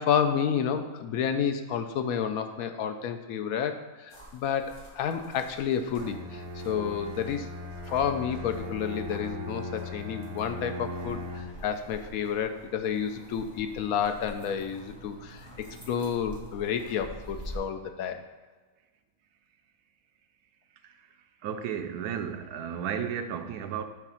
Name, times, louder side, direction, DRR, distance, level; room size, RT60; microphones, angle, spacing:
voice 1, 0.0-7.5 7.9-18.2, left 8 dB, 75° left, 7 dB, 1.0 m, -30 dB
sound 1, 4.1-17.6, right 1 dB, 15° left, 1.4 m, -47 dB
Bowed string instrument, 6.0-11.7, left 1 dB, 50° right, 0.8 m, -38 dB
voice 2, 21.4-23.8, right 8 dB, 90° right, 8 dB, 1.1 m, -33 dB
7.0 x 3.5 x 5.7 m, 1.3 s
omnidirectional pair, 1.6 m